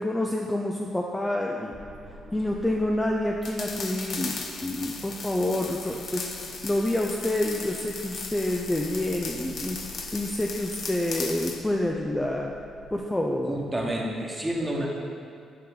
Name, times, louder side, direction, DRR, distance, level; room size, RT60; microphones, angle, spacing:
voice 1, 0.0-1.7 2.3-9.8 10.1-12.5 12.9-13.5, left 1 dB, 10° left, -1 dB, 0.5 m, -28 dB
sound 1, 1.7-13.0, right 1 dB, 35° left, 1.0 m, -48 dB
sound 2, 3.4-11.6, left 4 dB, 55° left, 0.7 m, -37 dB
voice 2, 13.5-14.9, right 1 dB, 10° right, -2 dB, 1.3 m, -29 dB
8.6 x 4.9 x 3.8 m, 2.4 s
cardioid pair, 90°, 0 cm